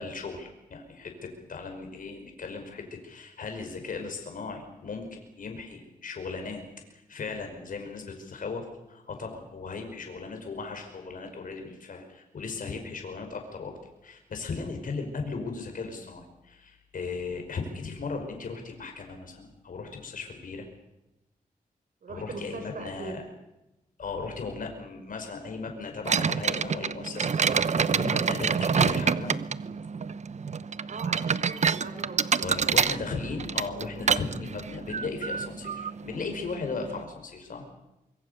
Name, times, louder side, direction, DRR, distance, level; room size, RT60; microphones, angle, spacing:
voice 1, 0.0-6.6 6.9-20.7 22.1-23.2 24.0-29.4 32.4-37.7, left 4 dB, 65° left, 4 dB, 5.4 m, -37 dB
voice 2, 22.0-23.2 30.9-33.0, right 4 dB, 65° right, 6 dB, 4.7 m, -40 dB
sound 1, 26.0-37.0, right 6 dB, 50° right, 0.9 m, -28 dB
25.0 x 23.5 x 6.8 m, 0.94 s
wide cardioid pair, 95°, 15 cm